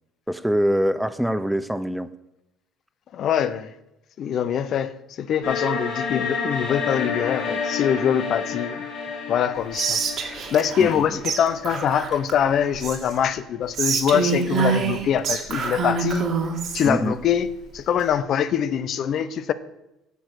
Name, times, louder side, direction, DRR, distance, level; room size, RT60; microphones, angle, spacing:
voice 1, 0.3-2.1 10.8-11.2 16.8-17.2, equal, 5° right, 0.6 m, -24 dB
voice 2, 3.1-3.7 4.2-8.8 9.3-10.0 10.3-16.3 16.7-17.5 17.7-19.5, left 8 dB, 55° left, 0.7 m, -23 dB
sound 1, 5.4-12.4, left 5 dB, 85° left, 3.6 m, -30 dB
Whispering, 9.7-11.0 11.2-11.4 11.6-13.2 13.7-16.9, right 6 dB, 55° right, 2.1 m, -26 dB
10.0 x 7.0 x 6.5 m
cardioid pair, 105°, 0 cm